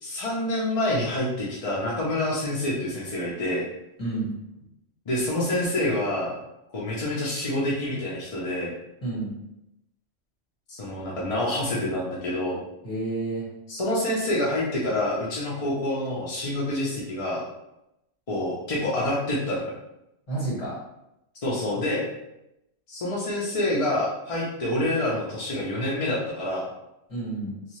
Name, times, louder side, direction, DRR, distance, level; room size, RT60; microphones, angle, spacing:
voice 1, 0.0-3.6 5.1-6.3 6.7-8.7 10.7-12.6 13.7-17.4 18.3-19.7 21.4-22.0 22.9-26.7, left 1 dB, 50° left, -5 dB, 0.4 m, -27 dB
voice 2, 4.0-4.3 9.0-9.3 12.8-13.5 20.3-20.8 27.1-27.5, right 2 dB, 25° left, -9 dB, 1.6 m, -29 dB
2.6 x 2.3 x 3.0 m, 0.87 s
omnidirectional pair, 1.3 m